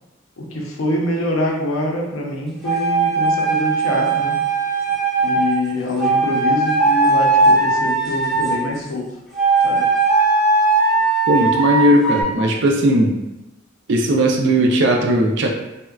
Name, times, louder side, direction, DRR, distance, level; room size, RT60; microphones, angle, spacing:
voice 1, 0.4-4.4 5.2-9.2 9.6-9.9, left 1 dB, 75° left, 0 dB, 0.6 m, -25 dB
sound 1, 2.6-5.6 6.0-8.7 9.3-12.2, right 3 dB, ahead, 0.5 m, -18 dB
voice 2, 11.3-13.2 13.9-15.5, right 1 dB, 60° right, 1 dB, 0.4 m, -17 dB
3.5 x 2.1 x 2.2 m, 0.98 s
head